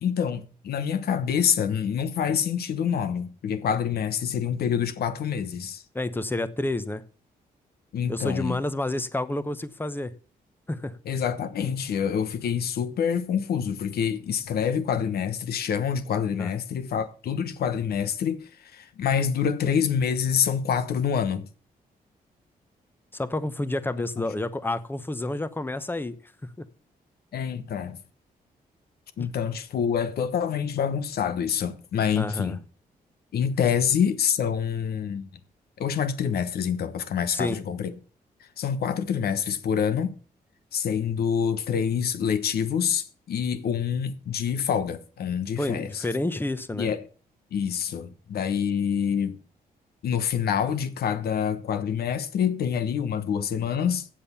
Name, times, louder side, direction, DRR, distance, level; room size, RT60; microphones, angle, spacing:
voice 1, 0.0-5.8 7.9-8.6 11.0-21.5 27.3-28.0 29.2-32.6 33.3-35.4 35.8-37.9 38.4-40.1 40.7-46.0 46.8-47.0 47.5-49.4 50.0-54.1, left 7 dB, 75° left, 1.1 m, -26 dB
voice 2, 5.9-7.0 8.1-10.1 10.7-11.0 16.4-16.5 23.1-26.2 26.4-26.7 29.2-29.3 32.2-32.6 37.3-37.6 45.6-46.9, left 2 dB, 15° left, 0.9 m, -29 dB
8.7 x 7.7 x 7.0 m
cardioid pair, 90°, 16 cm